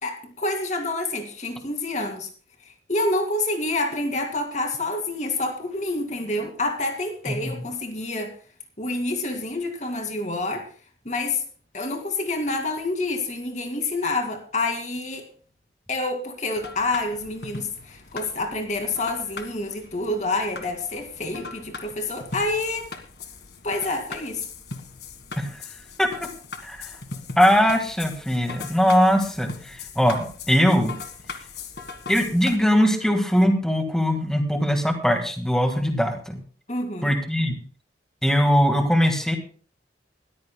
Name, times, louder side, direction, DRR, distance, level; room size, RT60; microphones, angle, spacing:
voice 1, 0.0-2.3 2.9-8.3 8.8-10.7 11.0-11.4 11.7-15.3 15.9-22.9 23.6-24.4 36.7-37.2, left 2 dB, 40° left, 4 dB, 2.3 m, -28 dB
sound 1, 16.6-32.6, left 4 dB, 60° left, 1.6 m, -39 dB
voice 2, 26.6-26.9 27.4-30.9 32.1-36.4 37.0-37.6 38.2-39.4, equal, 5° left, 4 dB, 1.7 m, -21 dB
20.5 x 14.0 x 2.2 m, 0.43 s
head